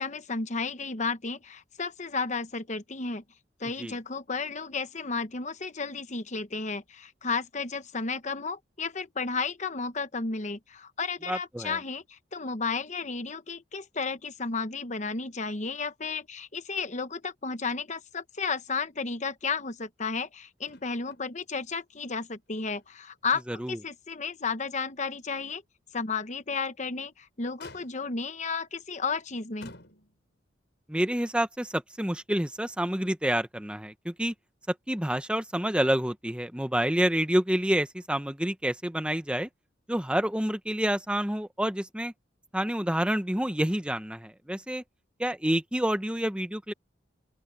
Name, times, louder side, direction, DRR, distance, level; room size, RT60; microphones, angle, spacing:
voice 1, 0.0-3.2 3.6-25.6 25.9-29.7, left 4 dB, 40° left, 1.0 m, -33 dB
voice 2, 11.3-11.8 23.5-23.8 30.9-34.3 34.9-39.5 39.9-42.1 42.5-44.8 45.2-46.7, right 1 dB, 5° right, 0.9 m, -28 dB
Motor vehicle (road), 20.6-21.3 21.6-21.7 22.2-23.2 23.6-23.7 24.3-24.4 26.6-27.0 27.6-28.3 29.0-29.2 29.6-30.4 31.5-31.6, left 3 dB, 65° left, 6.1 m, -51 dB
open air
head